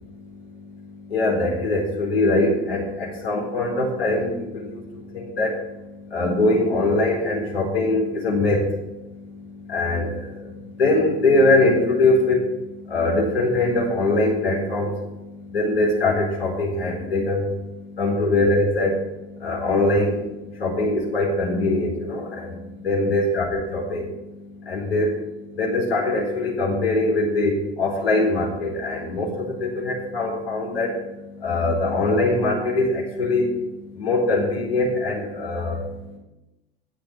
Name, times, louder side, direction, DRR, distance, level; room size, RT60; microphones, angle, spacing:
voice 1, 1.1-4.3 5.1-5.6 6.1-8.7 9.7-10.1 10.8-12.4 12.9-14.9 15.5-17.4 18.0-19.0 19.4-20.2 20.6-22.5 22.8-24.1 24.7-25.1 25.6-30.9 31.4-33.5 34.0-35.8, left 2 dB, 80° left, -1 dB, 4.3 m, -22 dB
17.0 x 6.1 x 9.7 m, 0.97 s
figure-of-eight pair, 75°, 30 cm